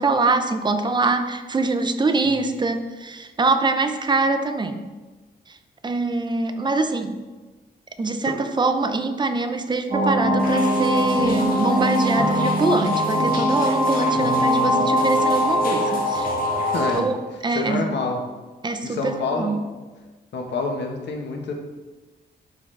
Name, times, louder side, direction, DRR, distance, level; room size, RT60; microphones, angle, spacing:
voice 1, 0.0-4.9 5.5-5.6 5.8-7.1 8.0-16.3 16.9-17.2 17.4-17.9 18.6-19.6, right 3 dB, 25° right, 8 dB, 0.5 m, -24 dB
sound 1, 9.9-16.9, equal, 45° right, 1.9 m, -21 dB
sound 2, 10.4-17.0, left 3 dB, 55° left, 1.2 m, -39 dB
voice 2, 16.6-17.1 17.5-18.2 18.8-19.8 20.3-21.5, left 3 dB, 85° left, 2 dB, 1.1 m, -27 dB
11.5 x 3.9 x 3.3 m, 1.3 s
wide cardioid pair, 130°, 18 cm